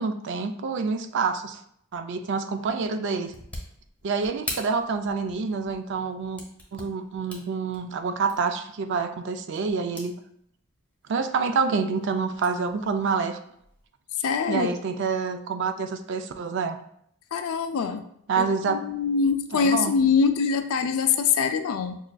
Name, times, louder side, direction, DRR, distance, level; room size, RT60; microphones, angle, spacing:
voice 1, 0.0-1.6 1.9-3.3 4.0-6.4 6.7-10.2 11.1-13.4 14.5-16.8 18.3-18.8 19.5-19.9, right 5 dB, 55° right, 8 dB, 0.3 m, -27 dB
sound 1, 2.6-10.2 10.6-11.1 11.5-13.9, left 1 dB, 5° left, 0.8 m, -43 dB
voice 2, 14.2-14.7 17.3-18.0 18.4-22.0, left 6 dB, 65° left, 8 dB, 0.4 m, -24 dB
6.2 x 2.4 x 2.2 m, 0.71 s
head